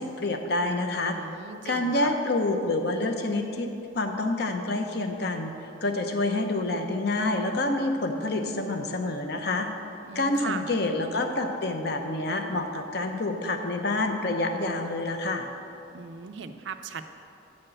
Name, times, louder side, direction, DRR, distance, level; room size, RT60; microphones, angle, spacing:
voice 1, 0.0-1.2 1.6-5.5 5.8-9.7 10.1-15.5, left 2 dB, 55° left, 5 dB, 0.7 m, -27 dB
voice 2, 1.0-2.1 10.0-10.8 15.9-17.1, right 6 dB, 65° right, 8 dB, 0.4 m, -38 dB
9.6 x 4.4 x 7.6 m, 2.7 s
head